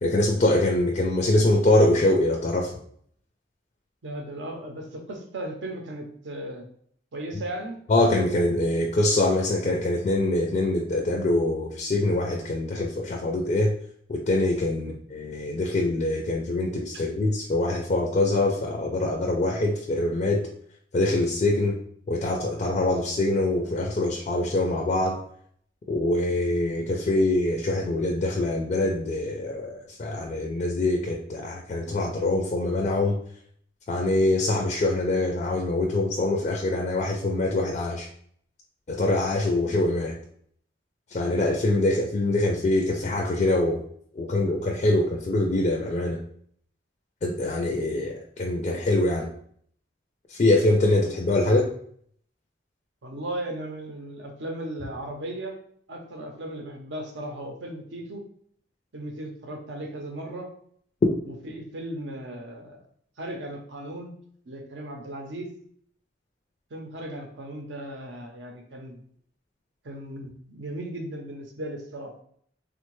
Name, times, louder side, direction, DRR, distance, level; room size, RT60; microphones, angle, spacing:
voice 1, 0.0-2.8 7.9-13.7 14.1-20.5 20.9-21.8 22.1-25.2 25.9-33.2 33.9-38.1 38.9-40.1 41.1-43.8 44.1-46.2 47.2-49.3 50.3-51.7, left 2 dB, 40° left, 1 dB, 0.3 m, -24 dB
voice 2, 4.0-6.7 7.1-7.8 14.8-14.9 16.9-17.0 53.0-55.6 55.9-58.2 58.9-60.5 61.3-62.8 63.2-64.1 64.5-65.5 66.7-69.0 69.8-72.1, right 1 dB, 70° right, 2 dB, 0.6 m, -36 dB
3.4 x 2.1 x 3.0 m, 0.62 s
head